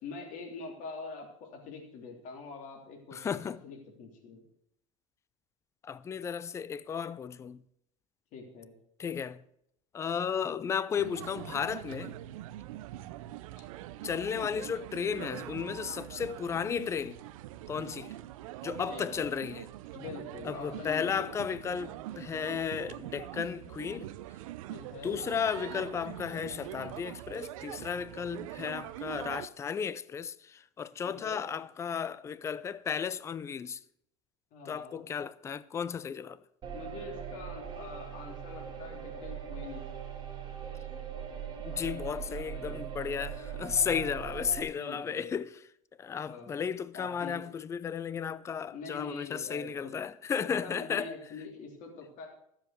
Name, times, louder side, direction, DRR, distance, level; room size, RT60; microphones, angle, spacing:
voice 1, 0.0-4.4 8.3-8.7 13.6-13.7 14.3-14.7 18.9-19.3 19.9-21.3 24.7-25.2 31.0-31.4 34.5-35.1 36.7-39.8 41.7-43.0 44.8-45.3 46.3-46.6 46.9-47.4 48.7-49.9 50.4-52.3, left 4 dB, 45° left, 3.3 m, -45 dB
voice 2, 3.1-3.6 5.8-7.6 9.0-9.4 9.9-12.2 14.0-17.2 17.7-18.2 18.6-19.7 20.4-24.1 25.0-33.8 34.7-36.4 41.6-45.6 46.0-51.1, left 7 dB, 15° left, 0.4 m, -34 dB
sound 1, 11.0-29.5, right 14 dB, 75° right, 0.8 m, -43 dB
sound 2, 36.6-44.6, right 8 dB, 25° right, 2.6 m, -40 dB
13.0 x 7.4 x 6.7 m
supercardioid pair, 130°, 18 cm